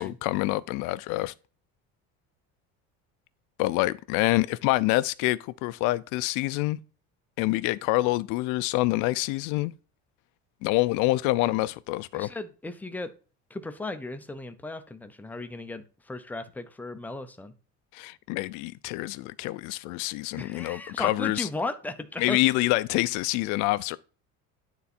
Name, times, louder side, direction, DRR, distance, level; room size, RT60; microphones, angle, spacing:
voice 1, 0.0-1.3 3.6-6.8 7.4-9.7 10.6-12.3 17.9-21.5 22.2-24.0, left 19 dB, 70° left, 0.6 m, -26 dB
voice 2, 12.1-13.1 13.5-17.5 20.3-22.4, left 2 dB, 5° left, 0.6 m, -36 dB
9.5 x 4.0 x 4.3 m
cardioid pair, 155°, 31 cm